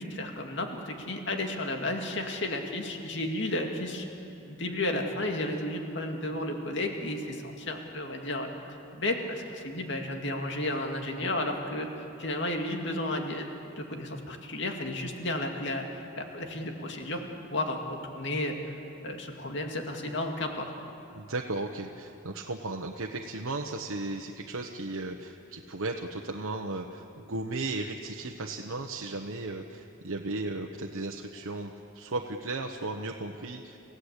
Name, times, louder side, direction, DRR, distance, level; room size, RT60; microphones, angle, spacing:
voice 1, 0.0-4.0 4.4-8.5 8.9-13.5 13.8-17.2 17.5-18.5 19.0-20.7, left 1 dB, 60° left, 3 dB, 2.3 m, -33 dB
voice 2, 21.1-33.8, right 2 dB, 85° right, 2 dB, 1.1 m, -35 dB
28.5 x 16.0 x 8.3 m, 2.8 s
head